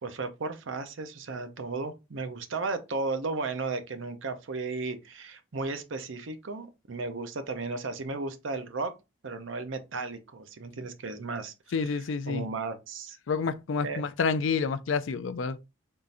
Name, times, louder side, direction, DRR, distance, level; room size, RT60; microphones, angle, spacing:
voice 1, 0.0-8.9 9.2-11.5 11.9-12.0 12.3-13.2 13.8-14.0, right 3 dB, 70° right, 0.6 m, -34 dB
voice 2, 11.7-12.5 13.3-15.7, left 5 dB, 70° left, 0.4 m, -29 dB
3.6 x 2.5 x 4.0 m
head